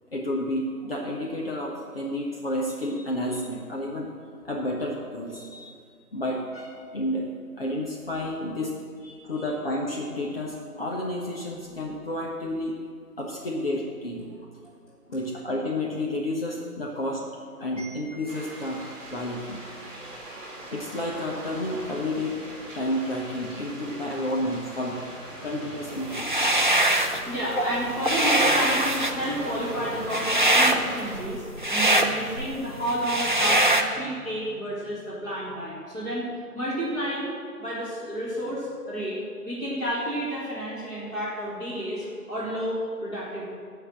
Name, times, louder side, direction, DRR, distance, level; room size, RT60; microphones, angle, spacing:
voice 1, 0.1-4.1 4.4-5.8 6.1-7.3 7.6-8.7 9.2-12.8 13.2-14.3 15.1-17.3 17.6-19.6 20.0-20.4 20.7-25.0 25.4-27.2 27.5-27.7, left 1 dB, 40° left, -2 dB, 1.3 m, -31 dB
sound 1, 18.3-31.2, right 1 dB, 10° right, 1.8 m, -40 dB
sound 2, 26.1-27.2 27.6-33.8, right 1 dB, 30° right, 0.6 m, -23 dB
voice 2, 27.3-36.3 36.5-37.3 37.6-39.2 39.4-43.5, equal, 5° left, -9 dB, 1.8 m, -30 dB
14.5 x 5.9 x 7.3 m, 2.1 s
figure-of-eight pair, 150°, 46 cm